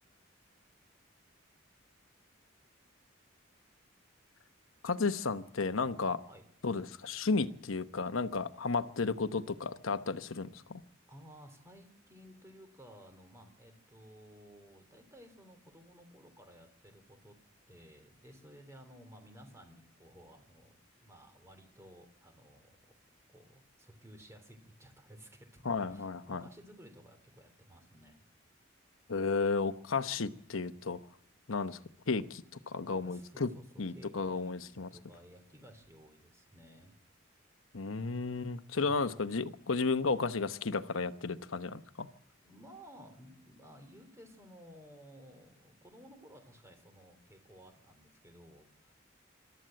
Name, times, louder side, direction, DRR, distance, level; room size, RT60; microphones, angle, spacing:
voice 1, 4.8-6.2 6.6-10.8 25.6-26.4 29.1-31.0 31.5-31.8 32.1-33.5 33.8-34.9 37.7-42.1, left 4 dB, 85° left, 11 dB, 1.0 m, -33 dB
voice 2, 11.1-17.4 17.7-23.0 23.3-28.3 33.0-36.9 38.7-39.1 42.4-48.9, equal, 15° right, 6 dB, 3.4 m, -56 dB
26.5 x 13.5 x 7.7 m, 0.72 s
head